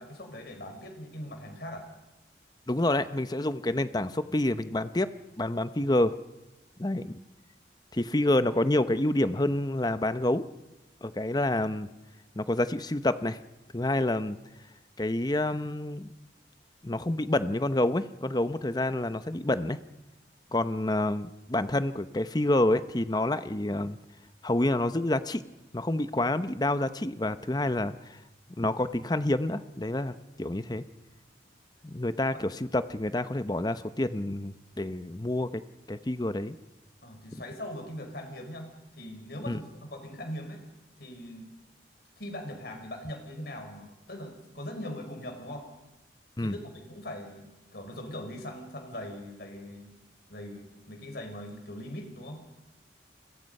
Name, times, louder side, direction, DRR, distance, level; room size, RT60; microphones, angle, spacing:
voice 1, 0.0-1.8 37.0-38.7 39.0-40.6 41.0-41.5 42.2-45.7 46.4-49.9 50.3-52.4, left 1 dB, 60° left, 4 dB, 5.1 m, -41 dB
voice 2, 2.7-5.1 5.4-6.2 6.8-7.2 7.9-10.4 11.0-11.9 12.4-13.4 13.7-14.4 15.0-16.1 16.8-19.8 20.5-24.0 24.4-25.4 25.7-28.2 28.6-30.8 31.8-35.6 35.9-36.6 39.5-39.6 46.4-46.5, left 1 dB, 20° left, 12 dB, 0.8 m, -28 dB
29.5 x 22.0 x 5.5 m, 1.0 s
head